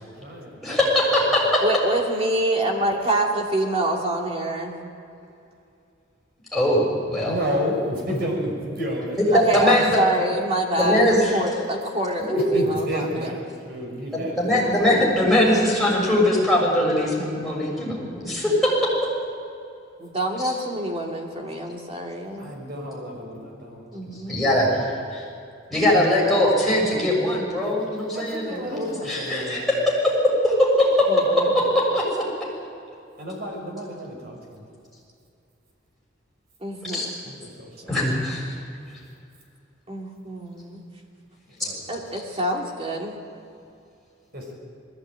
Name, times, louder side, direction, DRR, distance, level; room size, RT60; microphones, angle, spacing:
voice 1, 0.0-0.9 1.3-1.4 7.2-9.7 12.3-15.1 22.4-23.9 26.1-26.2 28.1-29.7 31.2-31.8 33.2-34.7 37.2-38.0 41.6-42.0 44.3-44.5, equal, 55° right, -1 dB, 6.0 m, -32 dB
voice 2, 0.6-1.6 6.5-7.3 9.3-10.0 10.8-11.3 12.2-12.6 14.1-18.6 20.4-20.5 24.3-25.2 25.7-28.6 29.1-31.1 31.7-32.3 36.8-37.1 37.9-38.4 41.6-41.7, left 1 dB, ahead, -5 dB, 6.7 m, -21 dB
voice 3, 1.6-4.8 9.3-13.3 15.4-15.8 20.0-22.5 23.9-24.4 28.7-29.0 31.1-31.5 36.6-37.3 39.9-40.9 41.9-43.2, right 1 dB, 30° right, 0 dB, 2.7 m, -26 dB
20.5 x 15.5 x 9.0 m, 2.6 s
head